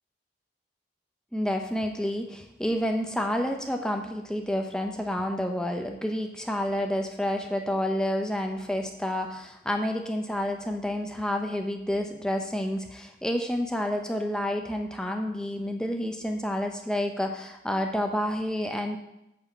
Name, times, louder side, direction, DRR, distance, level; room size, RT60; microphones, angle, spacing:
voice 1, 1.3-19.0, left 1 dB, 5° left, 3 dB, 0.7 m, -29 dB
8.5 x 4.7 x 7.3 m, 0.84 s
head